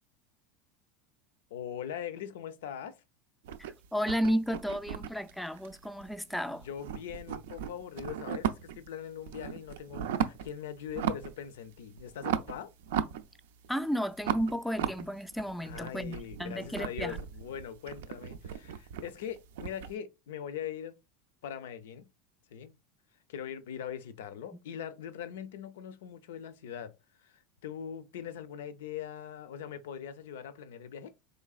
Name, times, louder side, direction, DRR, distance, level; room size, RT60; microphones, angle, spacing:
voice 1, 1.5-3.0 6.6-12.7 15.6-21.0 21.4-22.1 22.5-22.7 23.3-26.9 27.2-31.1, left 9 dB, 90° left, 0.5 m, -41 dB
sound 1, 3.4-6.3 6.6-8.9 9.2-10.5 10.9-11.4 11.7-13.7 14.2-19.9, right 9 dB, 85° right, 0.4 m, -36 dB
voice 2, 3.6-6.7 13.7-17.2, equal, ahead, 0.3 m, -33 dB
3.8 x 3.2 x 2.4 m
supercardioid pair, 140°, 0 cm